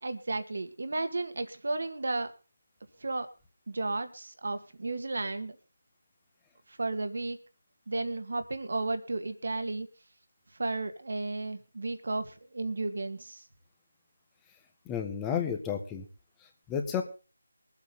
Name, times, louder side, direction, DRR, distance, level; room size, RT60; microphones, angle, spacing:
voice 1, 0.0-2.3 3.0-3.3 3.7-5.6 6.7-7.4 7.9-9.9 10.6-13.4, right 2 dB, 65° right, 8 dB, 1.9 m, -33 dB
voice 2, 14.8-16.0 16.7-17.0, left 8 dB, 10° left, 5 dB, 1.4 m, -31 dB
22.5 x 8.4 x 4.0 m, 0.32 s
figure-of-eight pair, 165°, 0 cm